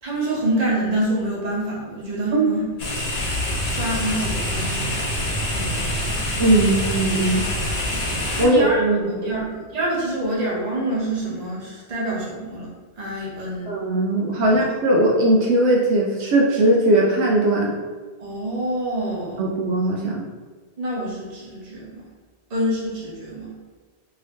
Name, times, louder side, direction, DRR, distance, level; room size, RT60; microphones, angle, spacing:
voice 1, 0.0-2.6 3.6-4.9 5.5-6.1 8.4-13.7 14.5-14.6 18.2-19.5 20.8-22.0 22.5-23.5, right 1 dB, 40° right, -5 dB, 0.9 m, -27 dB
sound 1, 2.8-8.5, left 1 dB, 85° left, 1.1 m, -25 dB
voice 2, 6.4-7.4 8.4-9.4 13.7-17.8 19.4-20.3, right 1 dB, 75° right, -2 dB, 0.8 m, -19 dB
2.8 x 2.8 x 3.3 m, 1.4 s
omnidirectional pair, 1.1 m